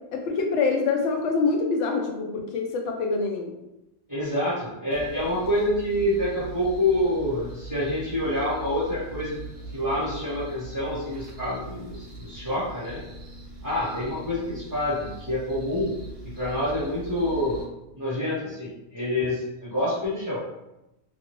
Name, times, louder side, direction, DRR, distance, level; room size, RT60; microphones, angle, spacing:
voice 1, 0.1-3.5, left 4 dB, 65° left, 2 dB, 0.8 m, -25 dB
voice 2, 4.1-9.4 9.7-13.0 13.6-15.9 16.4-17.7 18.0-20.4, left 1 dB, 15° right, -10 dB, 0.8 m, -27 dB
sound 1, 4.9-17.6, right 2 dB, 55° right, 0.4 m, -41 dB
2.6 x 2.6 x 2.9 m, 0.92 s
omnidirectional pair, 1.5 m